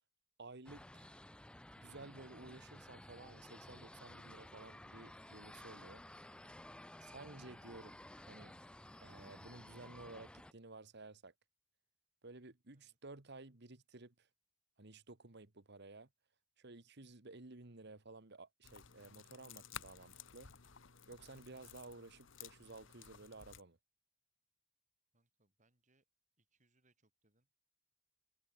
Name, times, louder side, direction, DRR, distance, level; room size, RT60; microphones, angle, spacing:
voice 1, 0.4-1.1 1.8-6.0 7.0-8.0 8.3-8.6 9.0-11.3 12.2-14.3 14.8-16.1 16.6-20.5 21.1-23.8, right 3 dB, 55° right, 1.7 m, -54 dB
sound 1, 0.6-10.5, left 1 dB, 5° left, 0.5 m, -55 dB
sound 2, 18.6-23.6, left 8 dB, 65° left, 1.4 m, -55 dB
voice 2, 25.1-26.0 26.4-27.5, right 2 dB, 40° right, 6.5 m, -78 dB
head